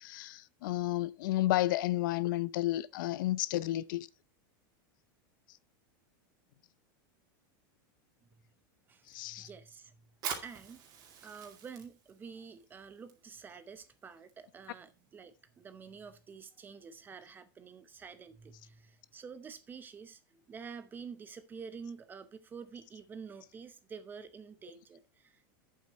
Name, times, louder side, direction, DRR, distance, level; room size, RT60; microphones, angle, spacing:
voice 1, 0.0-4.1 9.1-9.5, left 16 dB, 70° left, 0.6 m, -32 dB
voice 2, 8.9-10.1 10.4-10.8 11.2-25.5, right 6 dB, 15° right, 0.8 m, -49 dB
Fire, 10.1-17.3, right 7 dB, 35° right, 2.4 m, -48 dB
8.6 x 7.5 x 4.1 m
supercardioid pair, 155°, 11 cm